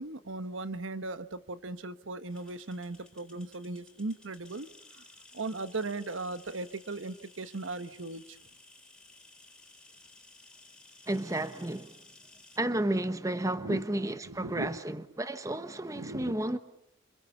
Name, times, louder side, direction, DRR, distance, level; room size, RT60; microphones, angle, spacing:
voice 1, 0.0-4.7 4.9-5.0 5.3-8.4 13.6-13.8 14.2-14.8 15.9-16.4, right 2 dB, 85° right, 1.2 m, -38 dB
sound 1, 2.3-12.6, left 2 dB, 5° left, 3.9 m, -57 dB
voice 2, 11.1-11.9 12.6-16.6, right 1 dB, 15° right, 1.0 m, -32 dB
28.0 x 26.5 x 7.0 m
head